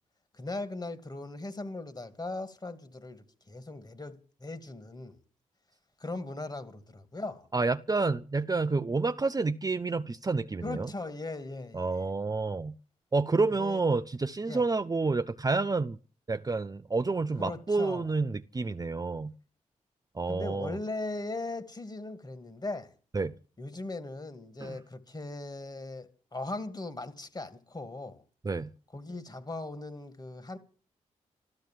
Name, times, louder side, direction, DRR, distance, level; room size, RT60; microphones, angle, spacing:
voice 1, 0.3-5.2 6.0-7.5 10.6-12.1 13.6-13.8 14.5-14.6 17.4-18.1 20.3-22.9 23.6-28.2 28.9-30.6, left 2 dB, 30° left, 2.5 m, -39 dB
voice 2, 7.5-10.9 11.7-12.7 13.1-16.0 16.3-19.3 20.1-20.8 23.1-23.3 24.6-24.8 28.4-28.7, right 3 dB, 25° right, 0.7 m, -29 dB
14.0 x 13.0 x 7.6 m
supercardioid pair, 50°, 14 cm